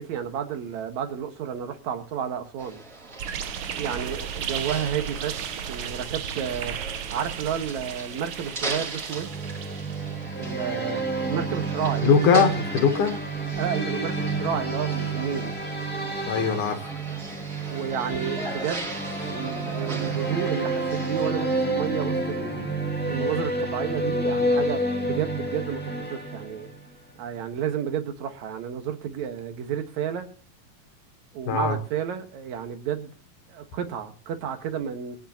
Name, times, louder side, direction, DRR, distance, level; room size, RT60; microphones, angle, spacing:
voice 1, 0.0-2.8 3.8-6.8 7.1-9.3 10.4-12.1 13.6-15.5 17.7-18.9 19.2-22.7 23.1-26.7 27.2-30.3 31.3-33.1 33.5-35.2, right 8 dB, 70° right, 2.7 m, -31 dB
sound 1, 2.6-21.3, right 3 dB, 25° right, 3.4 m, -39 dB
sound 2, 3.2-10.2, right 8 dB, 85° right, 1.1 m, -34 dB
sound 3, 9.1-26.9, right 2 dB, 5° left, 1.1 m, -29 dB
voice 2, 12.0-13.1 16.3-16.8 31.5-31.8, left 7 dB, 85° left, 2.6 m, -21 dB
23.0 x 10.5 x 2.8 m
omnidirectional pair, 3.5 m